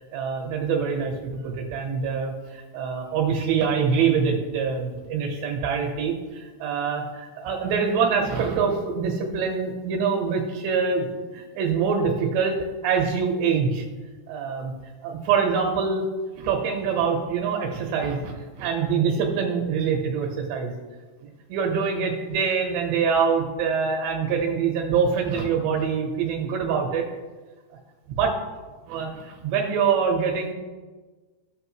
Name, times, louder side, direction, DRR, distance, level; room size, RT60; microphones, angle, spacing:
voice 1, 0.1-12.6 12.8-13.9 14.3-14.7 15.0-16.1 16.3-20.7 21.2-27.1 28.1-28.4 28.9-30.5, right 6 dB, 70° right, 1 dB, 3.2 m, -25 dB
15.5 x 6.5 x 3.1 m, 1.3 s
omnidirectional pair, 5.5 m